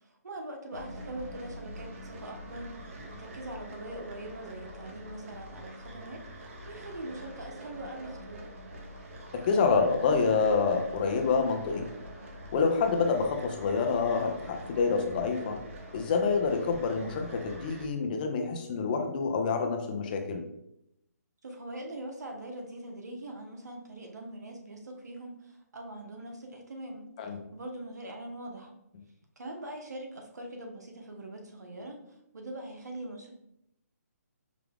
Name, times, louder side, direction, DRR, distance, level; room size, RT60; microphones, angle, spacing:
voice 1, 0.0-8.5 21.4-28.7 29.4-32.0 32.3-33.3, right 1 dB, 75° right, 2 dB, 1.0 m, -42 dB
sound 1, 0.7-17.9, equal, 50° right, 1.0 m, -45 dB
voice 2, 9.3-11.9 12.5-15.6 15.9-20.4 27.2-27.4, left 5 dB, 30° left, 4 dB, 0.5 m, -27 dB
4.8 x 2.3 x 3.5 m, 0.79 s
hypercardioid pair, 155°, 9 cm